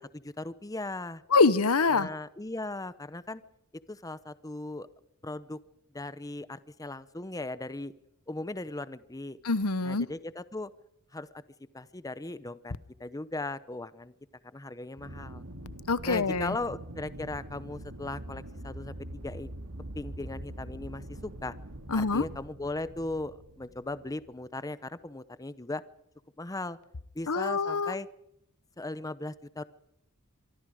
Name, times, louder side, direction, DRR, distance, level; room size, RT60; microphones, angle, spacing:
voice 1, 0.0-1.2 1.9-3.4 3.9-4.9 5.2-5.6 5.9-7.9 8.3-9.4 9.8-10.7 11.1-11.3 11.7-12.7 13.0-14.1 14.5-15.4 16.1-19.5 19.9-21.5 21.9-25.8 26.4-26.8 27.1-28.1 28.8-29.7, left 2 dB, 15° left, 15 dB, 0.7 m, -38 dB
voice 2, 1.3-2.1 9.4-10.1 15.9-16.5 21.9-22.2 27.3-27.9, left 4 dB, 75° left, 16 dB, 1.0 m, -25 dB
Aircraft, 15.0-24.4, right 1 dB, 85° right, 2.4 m, -44 dB
25.5 x 23.5 x 5.0 m, 0.77 s
head